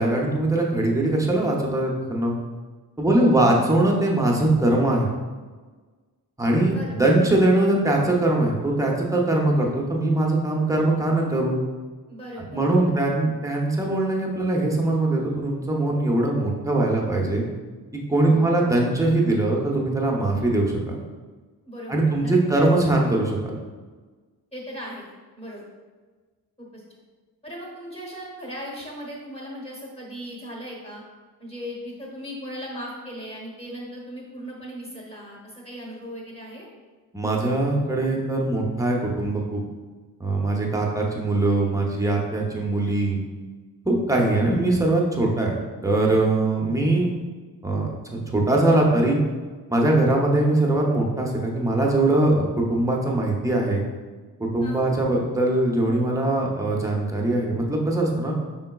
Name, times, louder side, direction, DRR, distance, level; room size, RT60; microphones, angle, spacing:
voice 1, 0.0-2.3 3.0-5.1 6.4-11.6 12.5-17.4 17.9-21.0 21.9-23.6 37.1-39.6 40.2-43.2 43.9-45.6 45.8-47.1 47.6-49.2 49.7-53.8 54.4-58.4, right 2 dB, 10° right, -1 dB, 0.5 m, -21 dB
voice 2, 3.1-3.5 6.7-7.2 12.1-12.7 18.2-18.6 21.7-22.3 24.5-25.1 25.4-25.6 26.6-26.8 27.4-31.0 31.4-36.7 54.6-54.9, equal, 15° left, -2 dB, 0.9 m, -38 dB
5.5 x 3.8 x 2.3 m, 1.4 s
wide cardioid pair, 170°, 38 cm